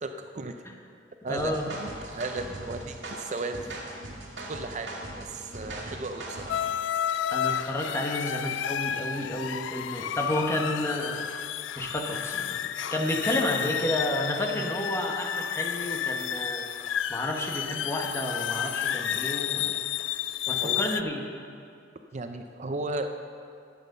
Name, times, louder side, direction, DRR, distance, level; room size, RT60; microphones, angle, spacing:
voice 1, 0.0-0.5 1.2-3.9 4.5-4.9 5.1-6.6 20.5-20.8 22.1-23.1, right 2 dB, 40° right, 6 dB, 0.5 m, -35 dB
voice 2, 1.3-1.7 7.3-11.3 11.8-16.6 17.1-19.8 20.5-21.2, left 1 dB, 15° left, 1 dB, 1.2 m, -31 dB
sound 1, 1.4-6.7, right 1 dB, 85° right, 2.1 m, -40 dB
sound 2, 6.5-21.0, left 10 dB, 85° left, 0.3 m, -31 dB
10.5 x 9.0 x 6.6 m, 2.4 s
head